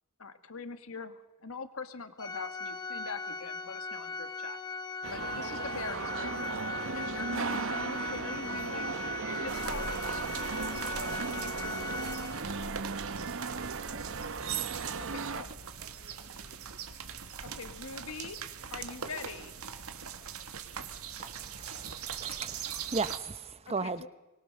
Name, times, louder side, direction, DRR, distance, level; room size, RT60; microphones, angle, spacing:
voice 1, 0.2-4.6 5.1-6.4 7.0-9.0 9.4-12.3 15.0-15.5 17.4-19.5 23.8-24.1, left 4 dB, 70° left, 9 dB, 1.7 m, -43 dB
Organ, 2.2-12.8, left 3 dB, 20° left, 1.1 m, -39 dB
sound 1, 5.0-15.4, right 5 dB, 65° right, 1.0 m, -36 dB
sound 2, 9.5-23.2, right 6 dB, 80° right, 1.7 m, -42 dB
voice 2, 13.6-17.0, right 2 dB, 50° right, 3 dB, 1.8 m, -58 dB
voice 3, 21.2-24.0, right 4 dB, 30° right, 14 dB, 0.9 m, -37 dB
24.5 x 22.5 x 6.5 m, 1.0 s
head